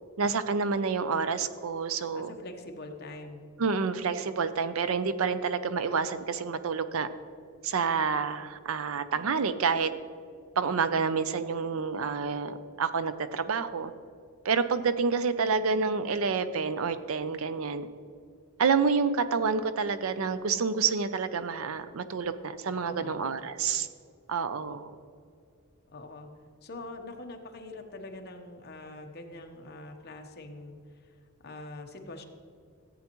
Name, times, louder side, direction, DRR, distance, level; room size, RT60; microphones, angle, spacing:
voice 1, 0.2-2.3 3.6-7.1 7.6-9.9 10.6-13.9 14.4-17.9 18.6-23.9 24.3-24.9, right 5 dB, 70° right, 12 dB, 0.5 m, -28 dB
voice 2, 2.1-3.5 22.8-23.3 24.6-24.8 25.9-26.3 26.6-30.8 31.4-32.2, left 2 dB, 50° left, 4 dB, 1.0 m, -44 dB
14.0 x 8.4 x 3.0 m, 2.3 s
head